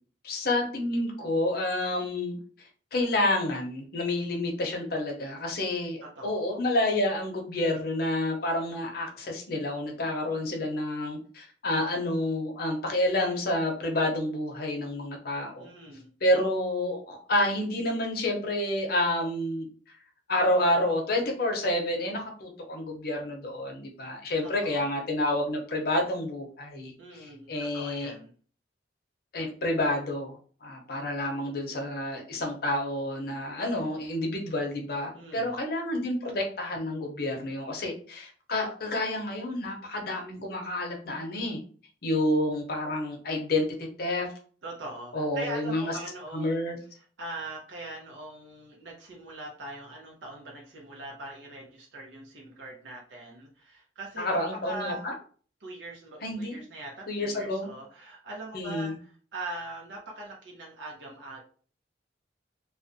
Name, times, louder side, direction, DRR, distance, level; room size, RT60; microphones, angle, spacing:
voice 1, 0.2-15.7 16.2-19.7 20.3-28.1 29.3-41.6 42.0-43.7 44.0-44.3 45.1-46.0 46.3-46.8 54.2-55.1 56.2-56.6 57.1-57.7 58.5-58.9, left 1 dB, 55° left, 2 dB, 0.6 m, -29 dB
voice 2, 6.0-6.4 15.6-16.1 24.4-24.8 27.0-28.3 35.1-35.6 44.6-46.6 46.9-55.1 55.6-61.4, right 2 dB, 85° right, -1 dB, 0.6 m, -42 dB
2.4 x 2.1 x 2.5 m, 0.43 s
head